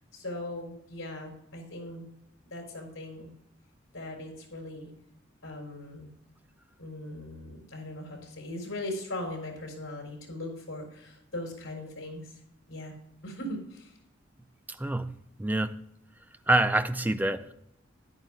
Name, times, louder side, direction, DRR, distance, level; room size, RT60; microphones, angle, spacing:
voice 1, 0.1-2.1 2.5-3.3 3.9-4.9 5.4-6.1 6.8-12.4 12.7-13.0 13.2-14.0, left 1 dB, 70° left, 4.2 m, -39 dB
voice 2, 14.7-15.8 16.5-17.5, right 2 dB, 10° right, 0.5 m, -27 dB
13.5 x 11.0 x 2.4 m
head